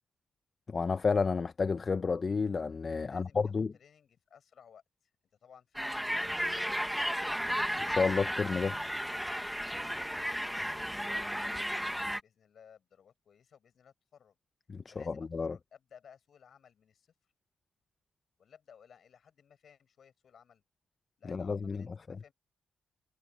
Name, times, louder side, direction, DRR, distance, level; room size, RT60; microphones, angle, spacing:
voice 1, 0.7-3.7 7.9-8.8 14.7-15.6 21.3-21.8, left 4 dB, 40° left, 0.8 m, -31 dB
voice 2, 3.0-3.4 3.7-5.1 5.4-7.5 9.9-14.4 14.9-17.1 18.4-20.6 21.2-22.3, left 7 dB, 65° left, 7.8 m, -59 dB
sound 1, 5.8-12.2, equal, ahead, 1.6 m, -34 dB
cardioid pair, 70°, 0 cm